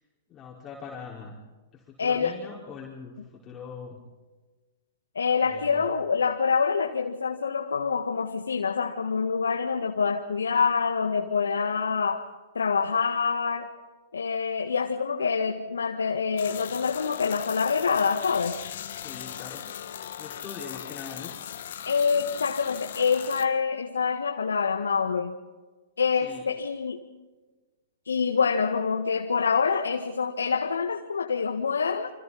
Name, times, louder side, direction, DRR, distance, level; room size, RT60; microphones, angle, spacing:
voice 1, 0.3-1.3 2.0-3.1 3.4-4.0 5.5-5.8 19.0-19.6 20.2-21.3 26.2-26.4, left 6 dB, 25° left, -4 dB, 4.9 m, -41 dB
voice 2, 2.0-2.4 5.1-12.3 12.5-13.7 14.1-18.6 21.8-25.3 26.0-27.0 28.0-32.1, left 5 dB, 80° left, 4 dB, 1.7 m, -26 dB
sound 1, 16.4-23.4, left 10 dB, 60° left, 2.0 m, -39 dB
29.0 x 26.0 x 4.2 m, 1.3 s
figure-of-eight pair, 110°, 0 cm